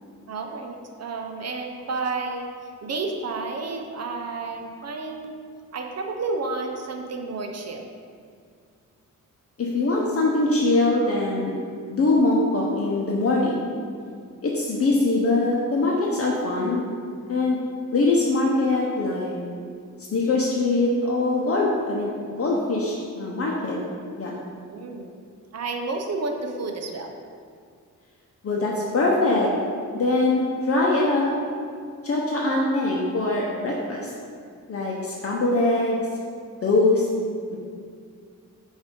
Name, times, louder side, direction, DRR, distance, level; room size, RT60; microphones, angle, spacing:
voice 1, 0.3-2.5 2.8-5.3 5.7-7.9 24.7-25.1 25.5-27.2, right 3 dB, 55° right, 3 dB, 0.7 m, -31 dB
voice 2, 9.6-11.6 11.9-13.6 14.4-16.9 17.3-17.6 17.9-19.4 20.1-23.8 24.2-24.4 28.4-29.5 29.9-31.3 32.0-34.1 34.7-36.0 36.6-37.1 37.5-37.6, left 2 dB, 45° left, -3 dB, 0.7 m, -22 dB
7.0 x 2.7 x 5.3 m, 2.2 s
cardioid pair, 105°, 31 cm